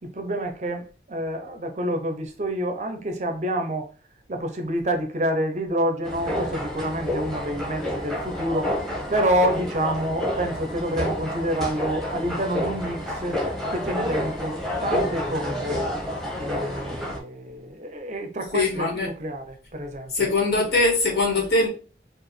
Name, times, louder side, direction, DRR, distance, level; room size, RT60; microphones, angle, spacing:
voice 1, 0.0-3.9 4.3-8.7 9.1-13.4 13.7-15.8 16.4-20.3, right 1 dB, 40° right, 0.6 m, -28 dB
sound 1, 6.0-17.2, equal, ahead, 1.0 m, -29 dB
voice 2, 18.5-19.1 20.1-21.7, left 2 dB, 65° left, 1.8 m, -22 dB
4.7 x 2.5 x 3.1 m
head